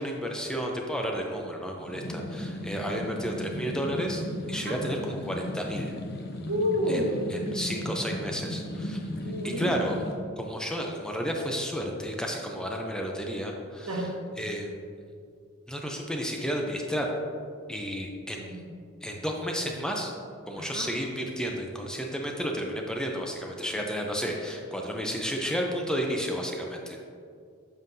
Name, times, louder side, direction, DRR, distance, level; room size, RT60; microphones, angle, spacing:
voice 1, 0.0-4.2 4.5-5.9 6.9-7.0 7.3-9.0 9.4-10.0 10.4-14.1 14.4-14.7 15.7-17.2 17.7-18.6 19.0-20.1 20.5-27.0, equal, 5° left, 0 dB, 0.5 m, -32 dB
sound 1, 1.8-10.1, left 1 dB, 50° left, 0.7 m, -36 dB
voice 2, 6.5-7.1 9.2-9.7 13.9-14.1 18.3-18.7 20.6-20.9, left 1 dB, 80° right, 0 dB, 1.1 m, -30 dB
7.3 x 5.6 x 2.7 m, 2.3 s
head